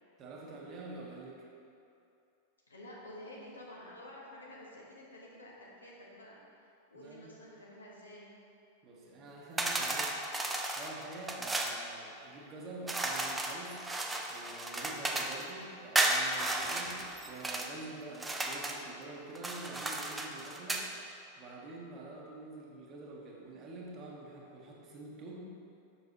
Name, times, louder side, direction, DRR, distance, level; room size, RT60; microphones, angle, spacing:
voice 1, 0.2-1.5 6.9-7.3 8.8-13.8 14.3-20.9 21.4-25.5, right 2 dB, 30° right, -2 dB, 1.1 m, -47 dB
voice 2, 2.7-6.4 6.9-8.3 8.9-9.2, left 1 dB, 75° left, -4 dB, 1.2 m, -50 dB
sound 1, 9.6-11.8 12.9-15.5 16.0-17.7 18.1-18.8 19.4-20.9, right 2 dB, 10° right, 0.5 m, -34 dB
7.0 x 5.8 x 2.8 m, 2.7 s
figure-of-eight pair, 90°, 0 cm